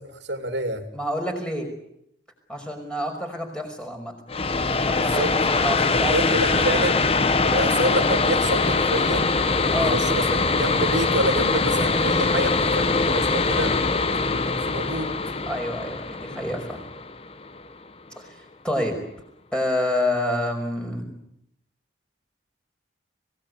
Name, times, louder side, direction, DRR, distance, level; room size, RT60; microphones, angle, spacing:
voice 1, 0.0-0.8 4.9-5.3 5.9-7.0 7.4-9.3 9.7-13.8 14.2-15.1, right 1 dB, 70° right, 6 dB, 2.6 m, -28 dB
voice 2, 0.9-1.7 2.5-4.1 4.9-6.9 9.7-10.0 15.5-16.8 18.2-19.0 19.5-21.1, left 1 dB, 5° left, 3 dB, 5.6 m, -28 dB
sound 1, 4.3-17.7, left 3 dB, 30° left, 1.0 m, -22 dB
26.0 x 18.5 x 9.7 m, 0.76 s
head